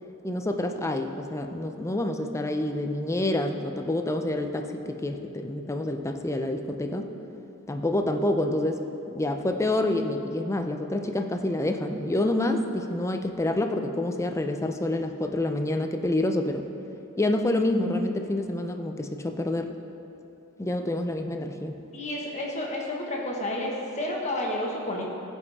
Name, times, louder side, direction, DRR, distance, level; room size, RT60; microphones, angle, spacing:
voice 1, 0.2-7.1 7.7-8.8 9.1-16.7 17.2-19.7 20.6-21.8, left 1 dB, 15° left, 5 dB, 0.5 m, -27 dB
voice 2, 21.9-25.0, left 1 dB, 35° left, -2 dB, 1.5 m, -30 dB
15.5 x 5.4 x 4.1 m, 3.0 s
head